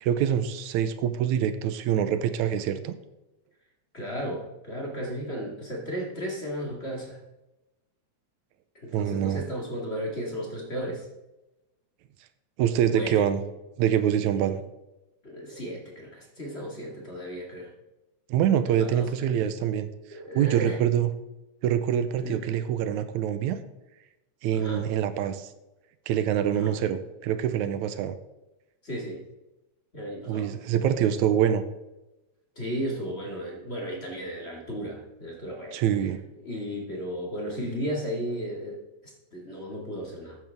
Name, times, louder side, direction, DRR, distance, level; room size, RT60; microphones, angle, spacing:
voice 1, 0.0-2.9 8.9-9.4 12.6-13.4 13.8-14.6 18.3-19.9 20.3-21.1 21.6-23.6 24.4-25.5 26.1-28.2 30.3-31.6 35.7-36.2, right 9 dB, 90° right, 11 dB, 2.1 m, -25 dB
voice 2, 3.9-7.2 8.7-11.1 12.9-13.3 14.4-14.5 15.2-17.7 18.7-19.3 20.1-20.8 22.2-22.4 24.5-24.9 26.5-26.7 28.8-29.2 29.9-30.5 32.6-35.8 36.4-40.4, equal, 25° left, -1 dB, 2.1 m, -35 dB
13.0 x 9.3 x 3.6 m, 0.99 s
omnidirectional pair, 3.3 m